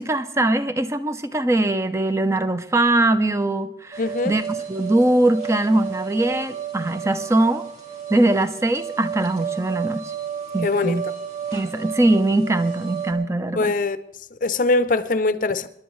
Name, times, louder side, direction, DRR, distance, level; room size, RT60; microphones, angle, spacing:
voice 1, 0.0-4.4 4.7-7.6 8.1-10.0 10.5-11.0 11.5-13.7, right 2 dB, 15° right, 0.6 m, -21 dB
sound 1, 3.9-13.1, right 8 dB, 40° right, 2.4 m, -32 dB
voice 2, 4.0-4.3 10.6-11.0 13.6-14.0 14.3-15.7, left 3 dB, 50° left, 0.6 m, -22 dB
26.0 x 11.0 x 3.2 m
head